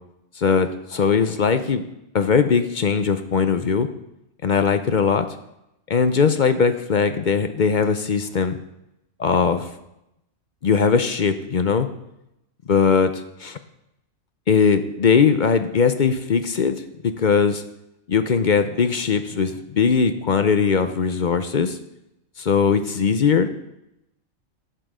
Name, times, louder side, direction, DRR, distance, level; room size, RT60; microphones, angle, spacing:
voice 1, 0.4-1.8 2.1-3.9 4.4-5.3 5.9-8.6 9.2-9.7 10.6-11.9 12.7-13.6 14.5-17.6 18.1-21.8 22.4-23.5, left 6 dB, 50° left, 9 dB, 0.6 m, -20 dB
10.0 x 7.6 x 4.9 m, 0.85 s
omnidirectional pair, 1.2 m